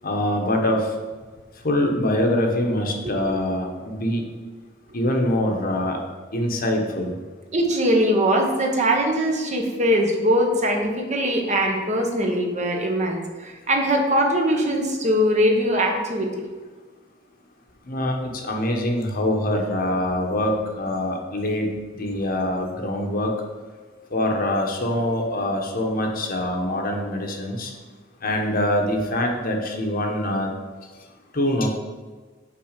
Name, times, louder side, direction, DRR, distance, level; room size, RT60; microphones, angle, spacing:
voice 1, 0.0-0.9 1.6-4.2 4.9-6.0 6.3-7.1 17.8-23.3 24.1-27.7 28.2-30.5 31.3-31.7, left 1 dB, 50° left, 1 dB, 1.1 m, -24 dB
voice 2, 7.5-16.3, equal, 35° right, 2 dB, 1.1 m, -21 dB
5.9 x 4.7 x 6.6 m, 1.4 s
head